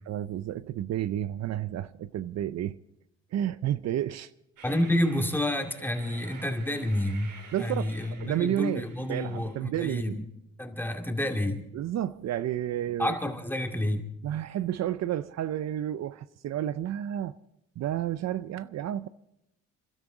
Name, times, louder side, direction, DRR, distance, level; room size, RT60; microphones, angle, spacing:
voice 1, 0.1-2.8 3.3-4.3 7.5-7.9 8.2-10.2 11.7-13.1 14.2-17.4 17.8-19.1, right 11 dB, 60° right, 0.5 m, -31 dB
voice 2, 4.6-7.3 7.6-10.2 10.6-11.6 13.0-14.1, left 1 dB, 5° left, 2.1 m, -29 dB
Train, 4.6-9.6, right 5 dB, 85° right, 3.2 m, -50 dB
27.5 x 12.5 x 3.8 m
cardioid pair, 90°, 30 cm